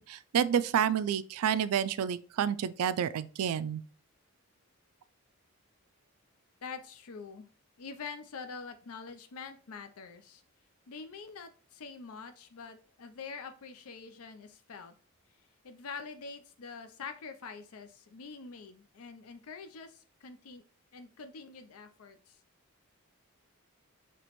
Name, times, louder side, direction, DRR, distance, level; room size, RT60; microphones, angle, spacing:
voice 1, 0.1-3.8, right 8 dB, 80° right, 0.3 m, -29 dB
voice 2, 6.6-7.5 7.8-10.4 10.9-14.9 15.6-20.6 20.9-22.4, left 5 dB, 75° left, 0.5 m, -45 dB
6.0 x 2.9 x 2.9 m
head